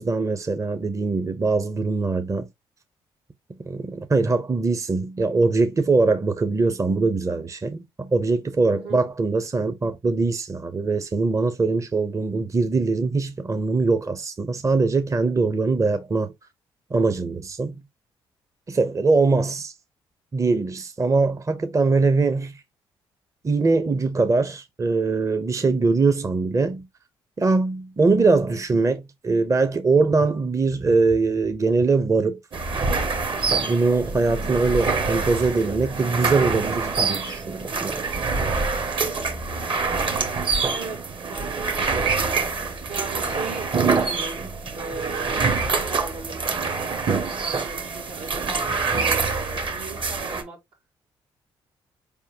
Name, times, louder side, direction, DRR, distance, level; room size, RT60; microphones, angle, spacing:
voice 1, 0.0-2.5 3.6-16.3 16.9-17.8 18.7-19.7 20.3-22.6 23.4-26.9 27.4-32.4 33.6-38.0, right 3 dB, 30° right, 0.7 m, -22 dB
voice 2, 8.7-9.0 40.7-41.0 41.3-44.5 44.8-46.6 47.4-50.6, right 3 dB, 80° right, 1.8 m, -38 dB
sound 1, 32.5-50.4, right 4 dB, 50° right, 1.2 m, -25 dB
4.5 x 3.6 x 2.8 m
hypercardioid pair, 55°, 11 cm